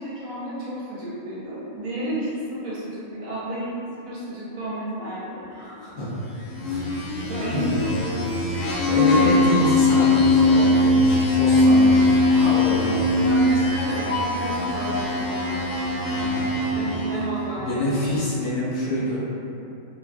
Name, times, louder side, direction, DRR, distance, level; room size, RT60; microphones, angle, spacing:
voice 1, 0.0-3.7 4.0-5.7 7.2-9.9 12.3-12.5 13.2-15.6 16.7-18.0, equal, 85° right, -8 dB, 1.3 m, -32 dB
voice 2, 5.6-6.1 6.6-7.0 7.5-7.6 8.9-12.2 12.5-13.1 16.0-17.0 17.6-19.2, left 1 dB, 50° left, -8 dB, 0.7 m, -27 dB
sound 1, 6.4-17.3, left 2 dB, 75° left, 0.9 m, -20 dB
3.1 x 2.3 x 2.4 m, 2.8 s
omnidirectional pair, 1.4 m